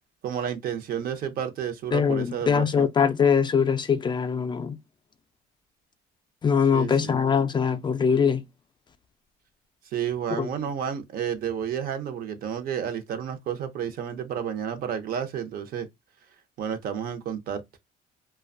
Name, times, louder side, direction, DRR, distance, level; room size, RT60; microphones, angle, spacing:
voice 1, 0.2-2.9 6.7-7.2 9.9-15.9 16.6-17.6, right 8 dB, 60° right, 0.7 m, -31 dB
voice 2, 1.9-4.8 6.4-8.4 10.4-10.5, left 6 dB, 25° left, 0.3 m, -22 dB
2.5 x 2.2 x 2.4 m
cardioid pair, 110°, 17 cm